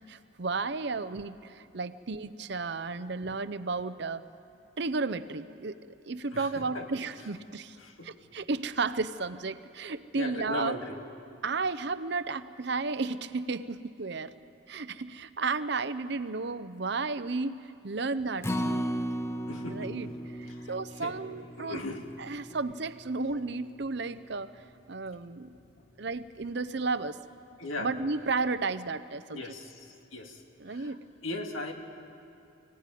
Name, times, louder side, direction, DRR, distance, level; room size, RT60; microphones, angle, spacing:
voice 1, 0.1-4.2 4.8-5.8 6.0-7.8 8.0-10.8 11.4-14.3 14.7-18.9 19.6-20.1 20.4-21.8 22.2-24.5 24.9-25.6 26.0-27.2 27.8-29.4 30.6-31.0, right 3 dB, 55° right, 13 dB, 0.7 m, -33 dB
voice 2, 6.3-6.8 7.8-8.1 10.1-11.0 19.5-19.9 20.5-20.7 21.0-21.1 21.6-22.0 27.6-27.9 29.3-30.4 30.7-30.9 31.2-31.7, left 2 dB, 85° left, 4 dB, 2.0 m, -38 dB
Acoustic guitar, 18.4-24.7 25.1-25.2 25.6-25.7, equal, 15° left, 0.6 m, -37 dB
24.5 x 17.0 x 9.3 m, 2.6 s
head